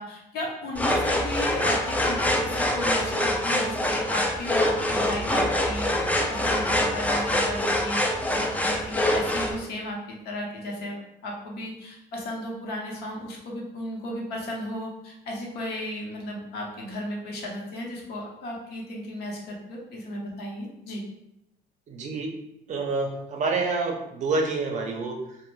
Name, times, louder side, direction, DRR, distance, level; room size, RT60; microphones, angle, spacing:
voice 1, 0.0-5.9 6.3-21.0, left 1 dB, 75° left, -2 dB, 0.8 m, -35 dB
sound 1, 0.7-9.5, left 1 dB, 10° left, 0.3 m, -25 dB
voice 2, 21.9-22.3 22.7-25.4, right 3 dB, 45° right, 2 dB, 0.5 m, -28 dB
2.4 x 2.1 x 3.1 m, 0.83 s
cardioid pair, 110°, 17 cm